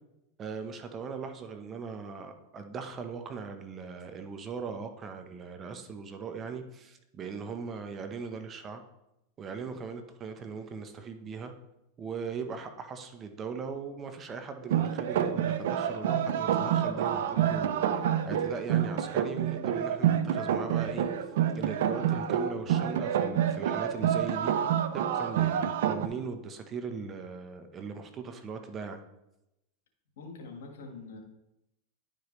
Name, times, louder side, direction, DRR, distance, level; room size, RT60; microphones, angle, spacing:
voice 1, 0.4-8.8 9.4-11.5 12.0-21.1 21.5-29.0, right 5 dB, 30° right, 7 dB, 0.8 m, -39 dB
sound 1, 14.6-26.1, right 9 dB, 75° right, 0.5 m, -28 dB
voice 2, 30.2-31.2, left 3 dB, 80° left, 3 dB, 1.6 m, -44 dB
10.5 x 5.1 x 3.2 m, 0.89 s
hypercardioid pair, 120°, 0 cm